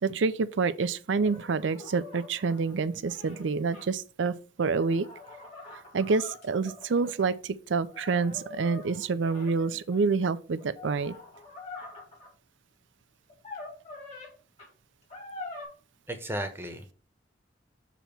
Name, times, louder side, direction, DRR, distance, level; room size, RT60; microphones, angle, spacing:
voice 1, 0.0-5.1 5.9-11.2, right 4 dB, 75° right, 0.5 m, -28 dB
sound 1, 1.2-3.9 4.6-7.3 7.9-10.0 10.6-12.3 13.3-14.3 14.6-14.7 15.1-15.6, left 3 dB, 35° left, 2.2 m, -45 dB
voice 2, 16.1-16.9, right 1 dB, 10° right, 0.9 m, -34 dB
7.0 x 3.0 x 5.8 m
head